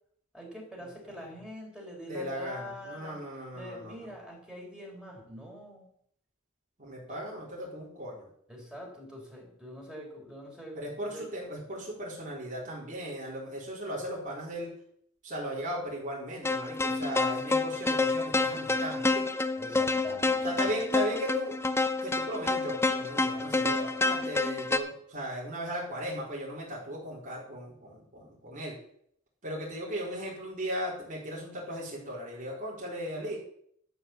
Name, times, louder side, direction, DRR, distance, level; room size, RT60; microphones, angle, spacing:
voice 1, 0.3-3.2 3.5-5.9 7.1-7.2 8.5-11.3 19.6-20.6, equal, 5° right, -1 dB, 3.8 m, -44 dB
voice 2, 2.1-4.1 6.8-8.3 10.8-14.7 15.2-19.2 20.4-21.5 22.0-28.8 29.4-33.4, equal, 40° right, -5 dB, 3.9 m, -37 dB
sound 1, 16.4-24.8, left 3 dB, 15° left, 0.6 m, -28 dB
12.0 x 5.7 x 7.2 m, 0.66 s
head